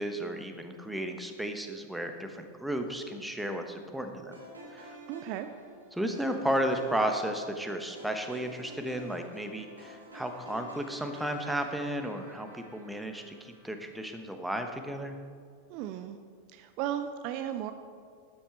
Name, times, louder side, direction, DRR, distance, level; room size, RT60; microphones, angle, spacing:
voice 1, 0.0-4.3 4.7-5.0 5.9-15.1, right 1 dB, 5° right, 5 dB, 1.1 m, -33 dB
sound 1, 4.3-14.6, right 1 dB, 80° right, 2.6 m, -50 dB
voice 2, 5.1-5.5 15.7-16.2 16.5-17.7, right 10 dB, 45° right, 9 dB, 0.5 m, -35 dB
13.0 x 9.1 x 4.5 m, 2.1 s
figure-of-eight pair, 90°, 0 cm